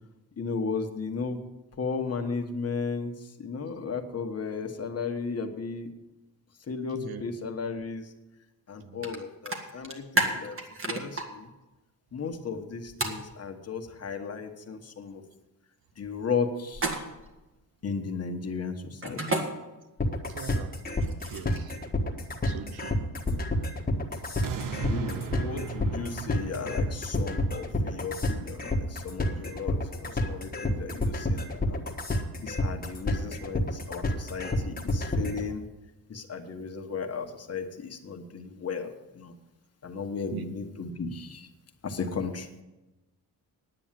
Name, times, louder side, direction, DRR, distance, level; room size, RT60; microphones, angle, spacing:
voice 1, 0.4-1.4 1.8-5.9 6.7-8.1 8.7-11.5 12.1-15.2 16.0-17.1 17.8-19.5 24.7-31.8 32.4-35.7 36.1-39.3 39.8-41.5 41.8-42.5, left 5 dB, 40° left, 1.3 m, -35 dB
sound 1, 9.0-9.2 9.5-11.2 13.0-13.2 16.7-17.3 19.0-19.4 20.8-21.7, right 2 dB, 35° right, 1.7 m, -29 dB
sound 2, 20.0-35.4, left 1 dB, 25° left, 1.4 m, -28 dB
voice 2, 20.3-20.8 21.3-21.7 22.4-23.0 40.3-40.4, right 8 dB, 85° right, 0.9 m, -41 dB
sound 3, 24.4-29.5 30.0-30.1, right 6 dB, 60° right, 0.9 m, -38 dB
9.8 x 8.9 x 7.5 m
cardioid pair, 125°, 36 cm